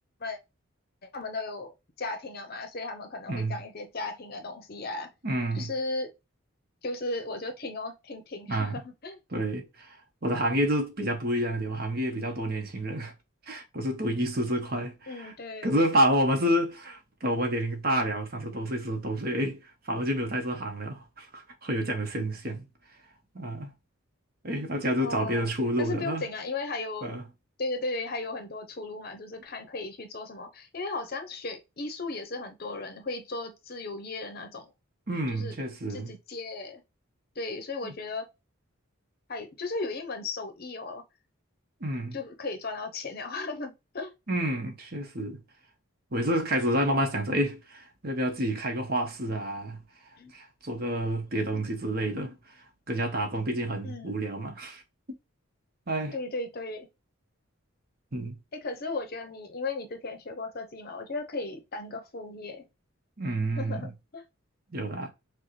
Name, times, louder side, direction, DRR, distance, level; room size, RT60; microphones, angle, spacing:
voice 1, 1.1-5.1 5.5-6.1 6.8-9.2 15.1-15.7 25.0-25.5 25.8-27.2 27.6-34.7 35.3-35.5 35.9-36.8 37.4-38.3 39.3-41.0 42.1-44.1 50.2-50.3 53.8-54.2 56.1-56.9 58.6-62.7 63.6-64.2, left 3 dB, 45° left, 0.7 m, -36 dB
voice 2, 5.2-5.7 8.5-8.8 9.3-10.0 10.2-13.1 13.5-15.3 15.6-22.7 23.3-23.7 24.4-26.2 27.0-27.2 35.1-36.1 37.8-38.0 41.8-42.2 44.3-45.4 46.1-49.8 50.3-54.8 55.9-56.2 58.1-58.4 63.2-63.9 64.7-65.1, right 1 dB, 45° right, 1.0 m, -29 dB
6.2 x 2.2 x 3.1 m
head